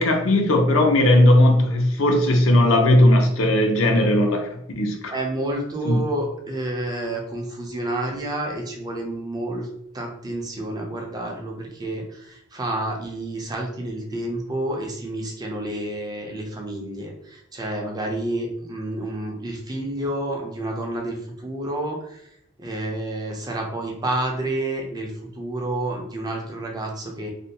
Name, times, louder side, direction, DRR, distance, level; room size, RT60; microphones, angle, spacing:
voice 1, 0.0-5.1 5.9-6.0, left 1 dB, 80° left, 2 dB, 0.5 m, -17 dB
voice 2, 5.1-9.7 9.9-22.3 22.6-27.3, right 1 dB, 20° right, 1 dB, 0.4 m, -29 dB
2.5 x 2.2 x 2.7 m, 0.74 s
head